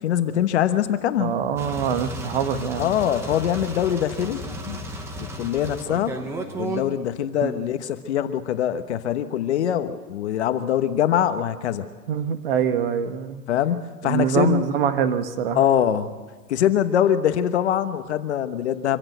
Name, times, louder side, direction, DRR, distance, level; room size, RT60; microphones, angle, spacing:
voice 1, 0.0-1.3 2.8-4.4 4.6-4.8 5.2-6.2 6.6-11.9 13.5-14.6 15.5-16.1 16.5-19.0, left 10 dB, 45° left, 10 dB, 1.2 m, -23 dB
voice 2, 1.2-2.9 7.4-7.6 12.1-13.4 14.0-15.6, right 8 dB, 35° right, 8 dB, 1.5 m, -24 dB
sound 1, 1.6-6.8, right 1 dB, 5° right, 0.9 m, -33 dB
25.0 x 15.5 x 8.1 m, 1.4 s
hypercardioid pair, 165°, 47 cm